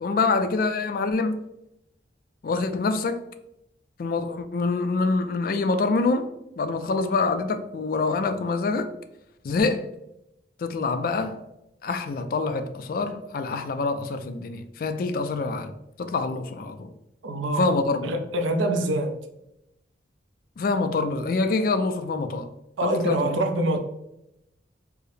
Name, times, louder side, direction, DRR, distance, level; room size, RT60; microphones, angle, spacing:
voice 1, 0.0-1.4 2.4-3.2 4.0-6.3 6.6-8.9 9.4-9.8 10.6-11.4 11.8-16.9 17.6-18.1 20.6-22.5 22.8-23.4, left 3 dB, 50° left, 0.3 m, -26 dB
voice 2, 17.2-17.7 18.0-19.2 22.8-23.8, right 1 dB, 90° right, 0.5 m, -24 dB
4.6 x 2.0 x 3.1 m
head